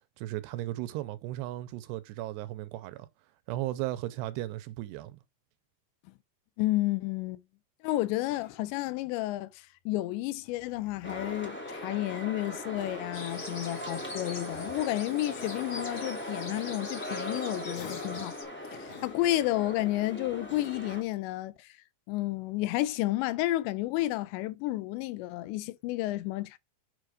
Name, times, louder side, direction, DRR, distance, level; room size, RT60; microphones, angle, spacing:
voice 1, 0.2-3.1 3.5-5.2, right 15 dB, 80° right, 2.6 m, -36 dB
voice 2, 6.6-7.4 7.8-18.4 18.7-21.7 22.1-26.6, left 16 dB, 85° left, 2.9 m, -31 dB
Cough, 8.3-9.0 10.4-11.6 12.8-13.3 14.1-14.9 15.4-16.0 16.5-16.7 17.7-18.4 18.9-19.6 20.5-21.0, left 9 dB, 65° left, 2.5 m, -50 dB
sound 1, 11.0-21.0, left 1 dB, 5° left, 0.8 m, -39 dB
sound 2, 13.1-18.4, left 4 dB, 45° left, 1.8 m, -45 dB
9.1 x 5.3 x 4.9 m
omnidirectional pair, 5.1 m